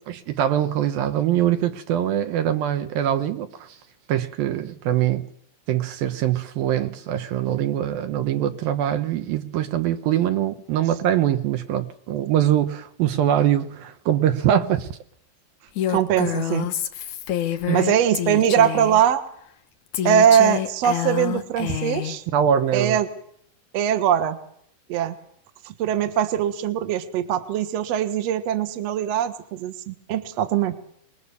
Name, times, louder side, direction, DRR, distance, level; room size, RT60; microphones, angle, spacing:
voice 1, 0.1-3.8 4.1-5.3 5.7-15.0 17.7-17.8 22.3-23.0, right 10 dB, 75° right, 2.2 m, -23 dB
Female speech woman speaking, 15.8-19.0 19.9-22.2, left 12 dB, 70° left, 1.8 m, -27 dB
voice 2, 15.9-16.7 17.7-19.2 20.0-22.2 22.7-23.1 23.7-24.4 24.9-25.2 25.6-30.7, right 9 dB, 90° right, 1.4 m, -21 dB
26.0 x 21.0 x 7.0 m
omnidirectional pair, 5.5 m